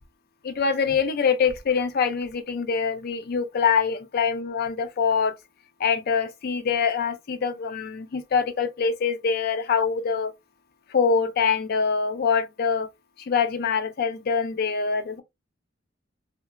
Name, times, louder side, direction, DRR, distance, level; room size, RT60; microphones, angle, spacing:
voice 1, 0.4-5.4 5.8-10.3 10.9-12.9 13.2-15.2, left 6 dB, 50° left, 0.4 m, -24 dB
2.8 x 2.1 x 2.3 m
head